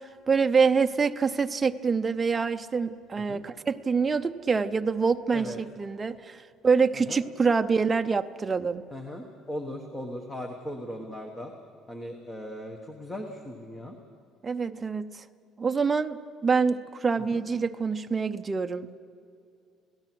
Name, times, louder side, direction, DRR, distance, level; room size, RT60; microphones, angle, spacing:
voice 1, 0.3-6.4 6.6-8.8 14.4-15.2 15.6-16.2 16.4-19.0, right 5 dB, 15° right, 8 dB, 0.5 m, -25 dB
voice 2, 8.9-11.5 11.9-14.0 17.3-17.4, left 1 dB, 10° left, 3 dB, 1.3 m, -38 dB
29.5 x 17.0 x 6.1 m, 2.5 s
cardioid pair, 175°, 0 cm